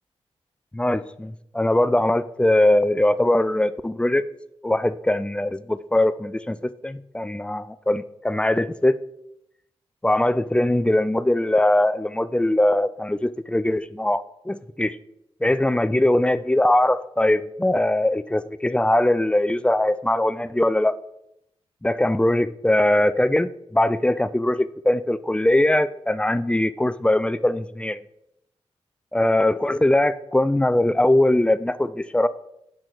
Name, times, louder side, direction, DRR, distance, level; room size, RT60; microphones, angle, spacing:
voice 1, 0.7-4.2 4.6-9.0 10.0-15.0 15.4-20.9 21.8-28.0 29.1-32.3, left 1 dB, 10° left, 14 dB, 0.3 m, -21 dB
5.9 x 4.7 x 3.9 m, 0.78 s
cardioid pair, 45°, 12 cm